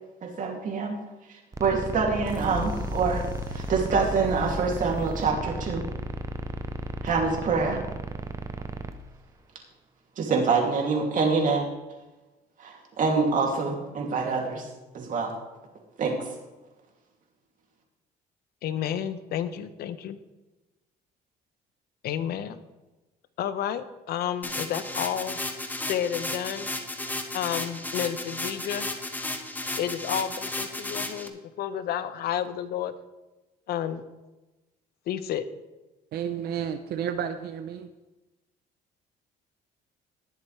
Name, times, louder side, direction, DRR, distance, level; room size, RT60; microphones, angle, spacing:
voice 1, 0.2-1.0 1.3-3.2 3.5-5.9 7.0-7.8 10.2-11.6 12.6-14.7 14.9-15.3 16.0-16.3, right 4 dB, 50° right, 1 dB, 2.8 m, -26 dB
sound 1, 1.5-8.9, right 2 dB, 20° right, 0.8 m, -34 dB
sound 2, 2.2-5.2, left 3 dB, 25° left, 2.5 m, -37 dB
voice 2, 18.6-20.2 22.0-22.6 23.4-25.4 25.9-26.7 27.3-28.9 29.8-32.9 33.7-34.0 35.1-35.4, left 10 dB, 70° left, 12 dB, 0.9 m, -31 dB
sound 3, 24.4-31.3, left 2 dB, 10° left, 1.1 m, -34 dB
voice 3, 36.1-37.9, right 8 dB, 70° right, 8 dB, 0.7 m, -31 dB
19.0 x 7.4 x 3.4 m, 1.1 s
cardioid pair, 110°, 17 cm